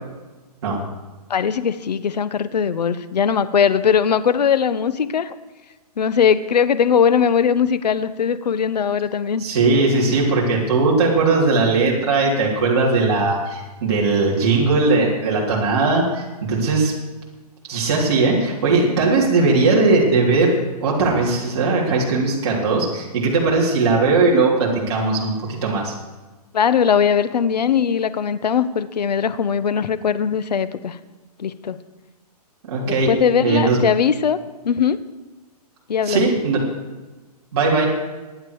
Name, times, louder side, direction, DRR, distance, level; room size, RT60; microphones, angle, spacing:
voice 1, 1.3-5.3 6.0-9.4 26.5-31.0 31.4-31.8 32.8-34.4 34.6-35.0 35.9-36.3, left 7 dB, 80° left, 14 dB, 1.1 m, -20 dB
voice 2, 9.4-16.9 17.7-20.5 20.8-25.3 25.6-25.9 32.6-33.1 33.4-33.8 36.1-36.6 37.5-37.9, right 3 dB, 40° right, -5 dB, 3.6 m, -18 dB
23.0 x 9.1 x 4.8 m, 1.2 s
hypercardioid pair, 175°, 21 cm